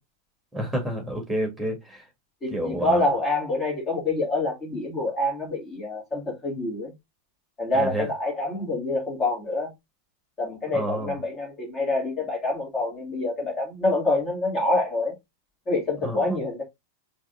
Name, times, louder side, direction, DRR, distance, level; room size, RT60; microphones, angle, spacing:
voice 1, 0.5-2.1 2.5-3.0 7.7-8.1 10.7-11.2 16.0-16.4, equal, ahead, 1.9 m, -29 dB
voice 2, 2.4-6.9 7.6-9.7 10.4-15.1 15.7-16.6, left 2 dB, 25° left, 2.4 m, -26 dB
4.9 x 3.4 x 2.6 m
figure-of-eight pair, 90°, 0 cm